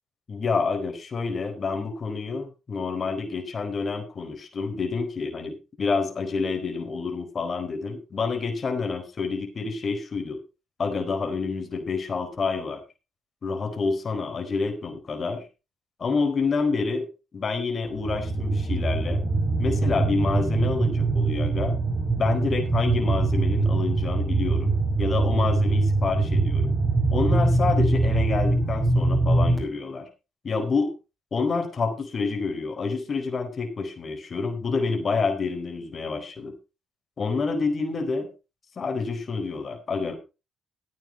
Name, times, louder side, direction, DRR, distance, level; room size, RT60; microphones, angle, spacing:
voice 1, 0.3-10.4 10.8-12.8 13.4-15.5 16.0-17.1 17.3-19.2 19.6-21.8 22.1-24.7 25.0-26.7 27.1-30.1 30.4-30.9 31.3-36.5 37.2-38.3 38.8-40.2, left 4 dB, 40° left, 5 dB, 4.3 m, -28 dB
sound 1, 17.9-29.6, right 3 dB, 15° right, 5.4 m, -23 dB
14.5 x 9.0 x 4.3 m, 0.30 s
cardioid pair, 90°, 0 cm